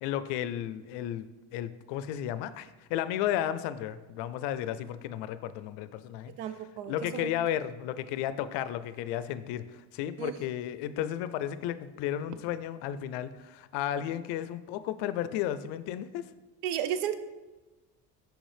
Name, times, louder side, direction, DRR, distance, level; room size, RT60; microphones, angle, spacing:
voice 1, 0.0-6.3 6.9-16.2, left 11 dB, 75° left, 13 dB, 0.5 m, -33 dB
voice 2, 6.4-7.3 10.2-10.3 16.6-17.2, right 10 dB, 80° right, 12 dB, 0.6 m, -33 dB
6.2 x 4.9 x 3.3 m, 1.2 s
supercardioid pair, 80°, 42 cm